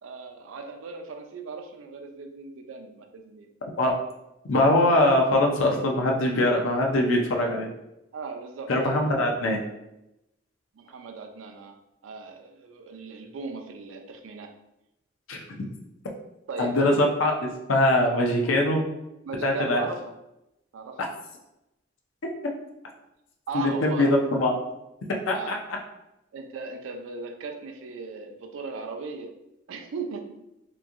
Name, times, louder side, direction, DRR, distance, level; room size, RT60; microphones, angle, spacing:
voice 1, 0.0-3.5 8.1-9.2 10.7-11.8 12.0-14.5 16.5-16.8 19.2-20.0 20.7-21.0 23.5-24.1 25.3-25.5 26.3-29.3 29.7-30.3, right 4 dB, 75° right, 5 dB, 0.4 m, -37 dB
voice 2, 4.4-7.7 8.7-9.6 15.3-15.7 16.6-18.8 19.4-19.8 23.5-24.5 25.3-25.5, left 1 dB, 85° left, 1 dB, 0.5 m, -22 dB
3.0 x 2.5 x 2.4 m, 0.89 s
head